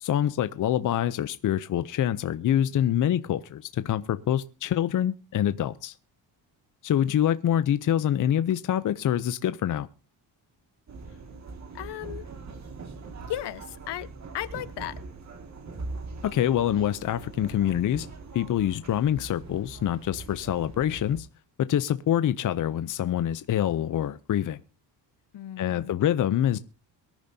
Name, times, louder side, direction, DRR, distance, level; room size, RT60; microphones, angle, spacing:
voice 1, 0.0-5.9 6.8-9.9 16.2-18.1 18.3-21.3 21.7-24.6 25.6-26.6, left 11 dB, 45° left, 0.6 m, -25 dB
sound 1, 10.9-21.2, right 3 dB, 40° right, 2.0 m, -42 dB
voice 2, 11.7-12.3 13.3-14.1 14.3-15.0 25.3-26.0, left 12 dB, 70° left, 1.1 m, -35 dB
23.0 x 10.5 x 2.7 m
cardioid pair, 130°, 42 cm